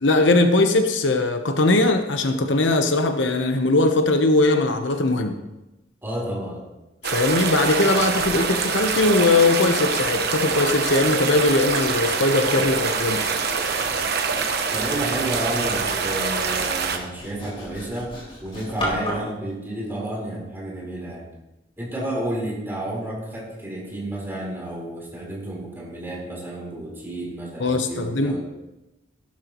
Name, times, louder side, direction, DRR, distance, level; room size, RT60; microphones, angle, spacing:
voice 1, 0.0-5.4 7.0-13.2 27.6-28.4, left 2 dB, 70° left, 6 dB, 1.0 m, -20 dB
voice 2, 6.0-6.6 14.7-18.1 18.4-21.3 21.8-28.4, right 1 dB, 10° right, -4 dB, 4.1 m, -31 dB
sound 1, 7.0-17.0, right 5 dB, 60° right, 1.2 m, -25 dB
Sawing, 7.9-19.3, left 1 dB, 30° left, 4.3 m, -37 dB
16.0 x 12.0 x 3.1 m, 0.98 s
head